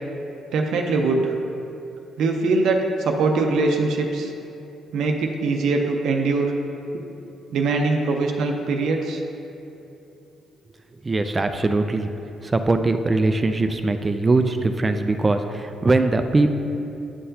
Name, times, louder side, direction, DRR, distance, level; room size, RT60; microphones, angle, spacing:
voice 1, 0.5-1.3 2.2-4.3 4.9-6.5 7.5-9.2, right 3 dB, 80° right, 2 dB, 0.6 m, -22 dB
voice 2, 11.0-12.1 12.4-16.5, right 2 dB, 25° right, 7 dB, 0.3 m, -21 dB
9.7 x 5.6 x 2.8 m, 2.8 s
cardioid pair, 90°, 0 cm